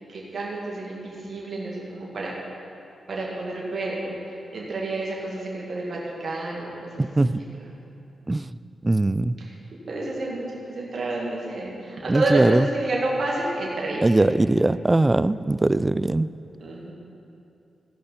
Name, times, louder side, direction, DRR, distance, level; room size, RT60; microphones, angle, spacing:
voice 1, 0.1-2.4 3.1-4.2 4.5-7.1 7.4-7.5 9.4-9.5 9.9-14.1 16.6-16.9, right 2 dB, 60° right, -4 dB, 2.1 m, -29 dB
voice 2, 7.0-7.4 8.3-8.5 8.8-9.4 12.1-12.7 14.0-16.3, right 2 dB, 25° right, 16 dB, 0.3 m, -20 dB
15.5 x 5.5 x 5.8 m, 2.8 s
cardioid pair, 50°, 0 cm